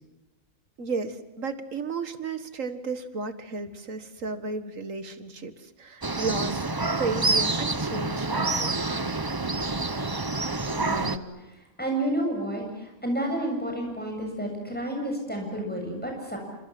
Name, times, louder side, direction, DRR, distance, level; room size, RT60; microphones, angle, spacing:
voice 1, 0.8-6.6 7.0-8.7, right 4 dB, 70° right, 10 dB, 2.0 m, -33 dB
sound 1, 6.0-11.2, right 3 dB, 20° right, 0.9 m, -27 dB
voice 2, 10.8-16.5, right 1 dB, 5° left, 1 dB, 7.5 m, -31 dB
28.5 x 26.5 x 7.7 m, 0.93 s
omnidirectional pair, 1.4 m